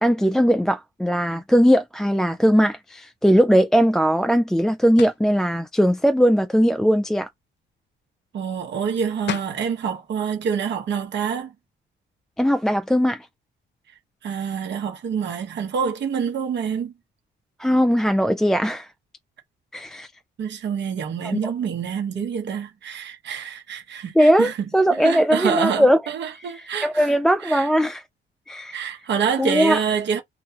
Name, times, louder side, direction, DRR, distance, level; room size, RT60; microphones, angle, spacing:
voice 1, 0.0-7.3 12.4-13.3 17.6-18.9 19.7-20.1 21.2-21.4 24.2-26.0 26.5-28.0 28.5-28.8 29.4-29.8, equal, ahead, 0.4 m, -19 dB
sound 1, 5.0-5.3 8.9-9.0 9.3-9.6, left 10 dB, 65° left, 0.6 m, -32 dB
voice 2, 8.3-11.5 14.2-16.9 20.4-24.6 24.9-27.1 27.4-27.7 28.6-30.2, right 7 dB, 65° right, 1.2 m, -26 dB
2.6 x 2.2 x 2.9 m
cardioid pair, 90°, 20 cm